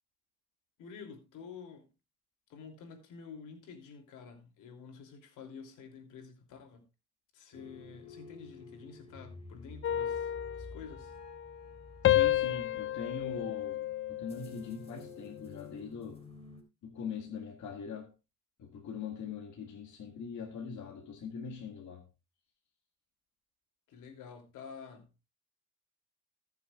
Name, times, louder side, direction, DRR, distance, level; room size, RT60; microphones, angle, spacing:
voice 1, 0.8-1.9 2.5-6.8 7.3-10.3 10.6-11.1 23.9-25.1, left 6 dB, 90° left, 3.1 m, -49 dB
sound 1, 7.5-16.6, left 3 dB, 20° left, 3.7 m, -52 dB
sound 2, 9.8-11.7 12.0-14.6 15.1-15.4, left 13 dB, 45° left, 0.4 m, -31 dB
voice 2, 12.0-13.8 14.1-16.3 16.8-18.1 18.6-22.1, left 6 dB, 70° left, 1.9 m, -42 dB
20.0 x 7.0 x 2.4 m
cardioid pair, 90°, 30 cm